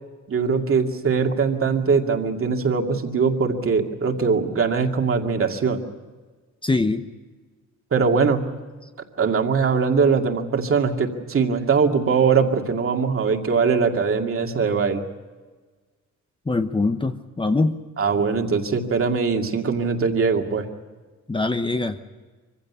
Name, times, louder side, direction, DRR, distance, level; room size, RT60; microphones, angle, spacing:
voice 1, 0.3-5.8 7.9-8.4 9.2-15.0 18.0-20.7, right 5 dB, 45° right, 4 dB, 2.3 m, -21 dB
voice 2, 6.6-7.1 16.5-17.8 21.3-22.0, left 3 dB, 15° left, 8 dB, 0.9 m, -23 dB
24.5 x 16.0 x 9.8 m, 1.4 s
cardioid pair, 120°, 30 cm